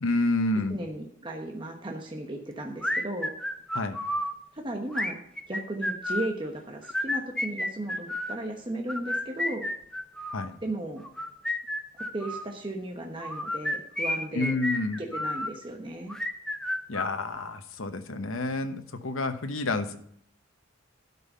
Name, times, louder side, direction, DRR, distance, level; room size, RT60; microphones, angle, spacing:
voice 1, 0.0-0.8 3.7-4.0 10.3-10.5 14.3-15.0 16.9-20.0, left 2 dB, 85° left, 7 dB, 1.1 m, -29 dB
voice 2, 0.7-3.3 4.5-9.6 10.6-11.0 11.9-14.5 15.0-16.2, right 1 dB, 25° right, 2 dB, 1.1 m, -35 dB
sound 1, 2.8-4.3 4.9-6.3 6.8-8.4 8.9-10.5 11.0-12.5 13.2-15.5 16.1-17.6, left 1 dB, 5° left, 0.7 m, -31 dB
12.5 x 5.5 x 5.4 m, 0.69 s
head